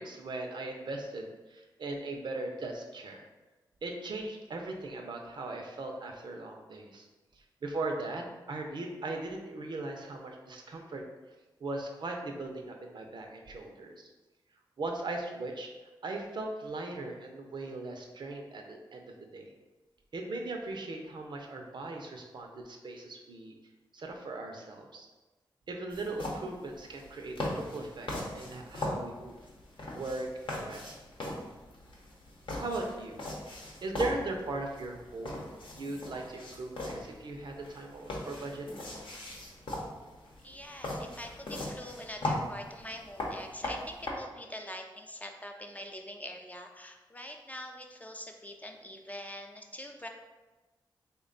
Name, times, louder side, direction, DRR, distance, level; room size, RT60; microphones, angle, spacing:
voice 1, 0.0-3.3 3.8-7.1 7.3-11.0 11.6-14.1 14.8-15.7 16.0-19.5 20.1-23.5 23.9-25.1 25.7-28.1 28.3-29.4 29.9-30.9 32.5-33.2 33.8-35.5 35.8-38.7, right 2 dB, 60° right, 2 dB, 0.5 m, -39 dB
sound 1, 25.9-44.1, left 1 dB, 65° left, 0.8 m, -39 dB
voice 2, 40.4-50.1, left 1 dB, 15° left, 3 dB, 0.4 m, -44 dB
3.4 x 2.2 x 3.8 m, 1.2 s
cardioid pair, 60°, 9 cm